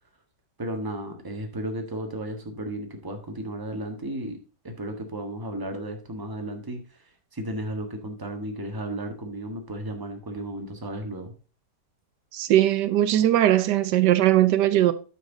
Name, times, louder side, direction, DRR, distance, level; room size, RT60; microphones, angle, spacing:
voice 1, 0.6-4.4 4.6-11.3, right 1 dB, 15° right, 1.4 m, -34 dB
voice 2, 12.3-14.9, right 13 dB, 80° right, 1.2 m, -20 dB
9.3 x 6.4 x 3.9 m
omnidirectional pair, 1.8 m